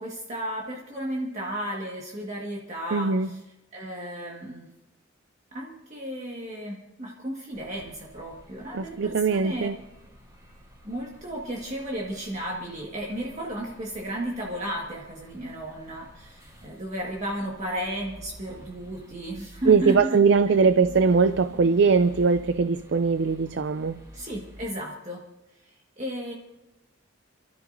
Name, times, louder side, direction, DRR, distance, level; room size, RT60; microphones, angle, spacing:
voice 1, 0.0-3.4 3.7-4.7 5.5-9.7 10.8-20.2 20.5-20.6 24.1-25.2 25.6-26.3, right 1 dB, 35° right, 1.7 m, -34 dB
voice 2, 2.9-3.3 8.7-9.7 19.7-23.9, right 5 dB, 60° right, 0.4 m, -21 dB
sound 1, 7.5-24.7, right 1 dB, 20° right, 3.4 m, -50 dB
28.0 x 13.0 x 2.6 m
head